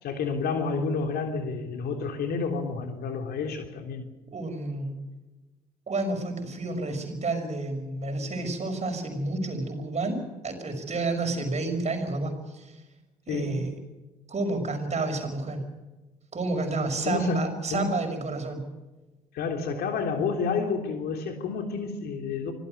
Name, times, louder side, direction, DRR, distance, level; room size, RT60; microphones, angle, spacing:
voice 1, 0.0-4.0 13.3-13.6 17.0-17.9 19.3-22.5, left 5 dB, 65° left, 3.3 m, -30 dB
voice 2, 4.3-4.9 5.9-12.7 13.3-13.7 14.3-15.6 16.3-18.6, right 2 dB, 40° right, 6.0 m, -30 dB
25.5 x 16.5 x 6.8 m
hypercardioid pair, 55°, 18 cm